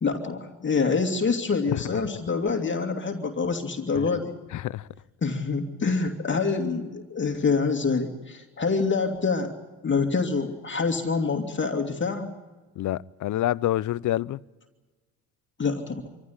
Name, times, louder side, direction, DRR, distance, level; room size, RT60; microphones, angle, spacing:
voice 1, 0.0-4.3 5.2-9.5 9.8-12.3 15.6-16.1, left 4 dB, 30° left, 2.6 m, -26 dB
voice 2, 4.5-4.9 12.8-14.4, left 14 dB, 50° left, 0.7 m, -28 dB
26.0 x 15.0 x 9.7 m
supercardioid pair, 85°, 40 cm